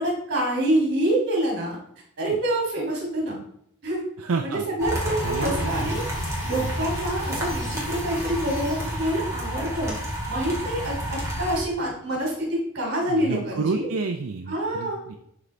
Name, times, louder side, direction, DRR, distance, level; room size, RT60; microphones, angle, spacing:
voice 1, 0.0-1.8 2.2-3.4 3.8-4.0 4.4-6.1 6.4-9.9 10.3-13.9 14.5-15.0, right 1 dB, 50° right, -1 dB, 2.9 m, -26 dB
voice 2, 4.2-4.7 5.2-6.1 6.5-6.9 13.1-15.2, right 4 dB, 75° right, 4 dB, 0.5 m, -30 dB
sound 1, 4.8-11.6, equal, 15° right, 2.1 m, -30 dB
sound 2, 5.0-9.4, left 1 dB, 20° left, 2.5 m, -40 dB
11.0 x 4.0 x 3.3 m, 0.70 s
head